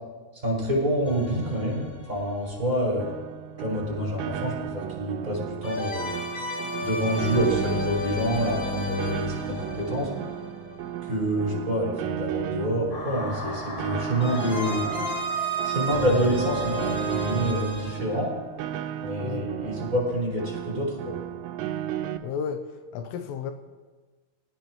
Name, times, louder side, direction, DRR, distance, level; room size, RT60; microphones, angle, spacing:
voice 1, 0.4-3.1 3.6-6.1 6.8-10.1 11.0-15.2 15.6-18.3 19.0-21.2, equal, 15° right, -4 dB, 6.3 m, -27 dB
sound 1, 1.0-3.0 5.6-11.6 14.2-18.0, equal, 15° left, 2.4 m, -32 dB
Piano, 3.0-22.2, right 11 dB, 85° right, 3.2 m, -35 dB
sound 2, 12.9-17.9, left 1 dB, 60° left, 4.6 m, -38 dB
voice 2, 19.2-19.5 22.2-22.7 22.9-23.5, left 7 dB, 85° left, 7 dB, 3.6 m, -32 dB
22.5 x 19.0 x 3.4 m, 1.3 s
omnidirectional pair, 5.6 m